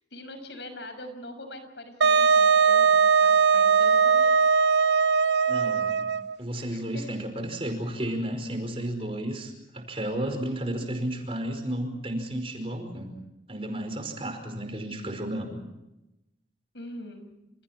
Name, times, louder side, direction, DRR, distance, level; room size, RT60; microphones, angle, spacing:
voice 1, 0.1-4.3 6.7-7.2 16.7-17.3, left 1 dB, 80° left, 8 dB, 6.2 m, -42 dB
Wind instrument woodwind instrument, 2.0-6.4, right 6 dB, 80° right, 0.7 m, -20 dB
voice 2, 5.5-6.1 6.4-13.1 13.5-15.6, right 1 dB, 30° right, 6 dB, 5.1 m, -32 dB
29.5 x 28.5 x 4.4 m, 0.93 s
head